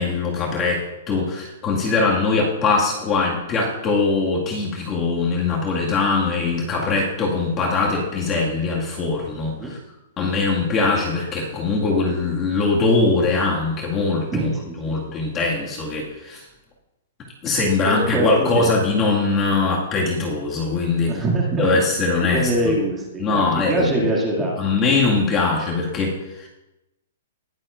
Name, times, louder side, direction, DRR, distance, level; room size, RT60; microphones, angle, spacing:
voice 1, 0.0-9.8 10.2-14.5 14.8-16.4 17.4-21.1 21.6-22.7 23.2-23.9 24.6-26.5, left 3 dB, 20° left, -3 dB, 1.9 m, -21 dB
voice 2, 14.3-14.9 17.8-18.7 21.1-21.9 22.2-24.6, right 1 dB, 15° right, -3 dB, 2.3 m, -23 dB
20.5 x 7.5 x 2.5 m, 0.96 s
hypercardioid pair, 155°, 0 cm